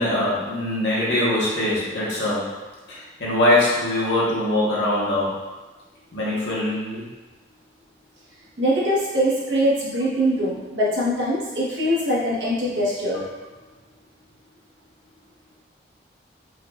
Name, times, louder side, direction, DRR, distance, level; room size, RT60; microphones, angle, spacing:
voice 1, 0.0-2.5 2.9-5.3 6.1-7.0, left 1 dB, 75° left, -7 dB, 1.2 m, -22 dB
voice 2, 8.6-13.3, equal, 85° right, -7 dB, 1.1 m, -22 dB
4.6 x 2.3 x 2.3 m, 1.2 s
head